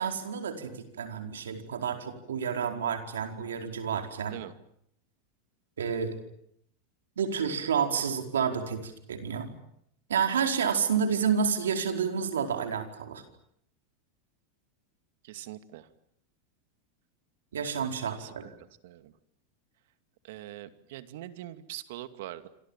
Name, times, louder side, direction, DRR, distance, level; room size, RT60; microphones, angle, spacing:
voice 1, 0.0-4.4 5.8-6.2 7.2-9.5 10.1-13.2 17.5-18.5, right 7 dB, 90° right, 6 dB, 4.8 m, -30 dB
voice 2, 15.2-15.9 18.1-18.3 18.8-19.1 20.2-22.5, right 14 dB, 70° right, 11 dB, 2.4 m, -42 dB
27.0 x 27.0 x 7.4 m, 0.72 s
hypercardioid pair, 100°, 0 cm